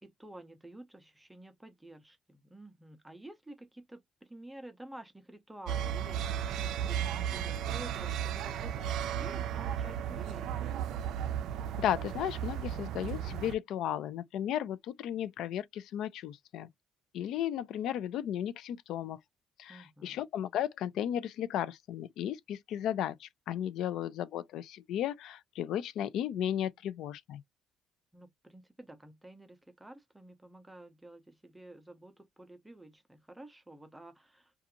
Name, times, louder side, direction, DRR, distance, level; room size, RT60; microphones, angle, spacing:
voice 1, 0.0-10.7 19.7-20.2 28.1-34.5, right 1 dB, 5° right, 0.5 m, -51 dB
sound 1, 5.7-13.5, right 9 dB, 70° right, 0.4 m, -35 dB
voice 2, 11.8-16.7 17.1-19.2 19.6-27.4, left 10 dB, 65° left, 0.3 m, -35 dB
2.5 x 2.3 x 2.8 m
cardioid pair, 135°, 0 cm